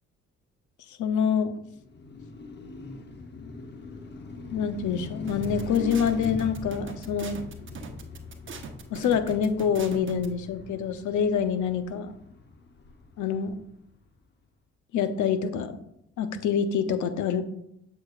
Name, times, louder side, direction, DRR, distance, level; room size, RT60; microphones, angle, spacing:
voice 1, 1.0-1.6 4.5-7.4 8.9-12.1 13.2-13.5 14.9-15.8 16.2-17.4, left 7 dB, 75° left, 9 dB, 0.8 m, -26 dB
Car passing by, 1.7-13.9, left 3 dB, 35° left, 0.9 m, -41 dB
sound 1, 5.3-10.3, right 5 dB, 40° right, 0.9 m, -41 dB
7.5 x 6.6 x 2.4 m, 0.77 s
cardioid pair, 90°, 30 cm